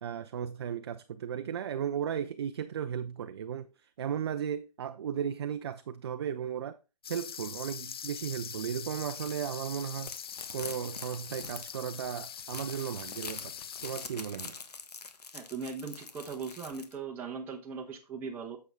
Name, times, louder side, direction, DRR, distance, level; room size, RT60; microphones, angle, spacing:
voice 1, 0.0-6.8 7.1-10.2 10.5-13.5 13.8-14.6, right 8 dB, 40° right, 0.5 m, -35 dB
sound 1, 7.0-14.1, left 8 dB, 35° left, 0.4 m, -43 dB
sound 2, 9.2-9.5 9.8-16.9, left 4 dB, 70° left, 1.4 m, -45 dB
voice 2, 15.3-18.6, right 5 dB, 10° right, 0.9 m, -39 dB
8.9 x 6.9 x 3.5 m
figure-of-eight pair, 145°, 21 cm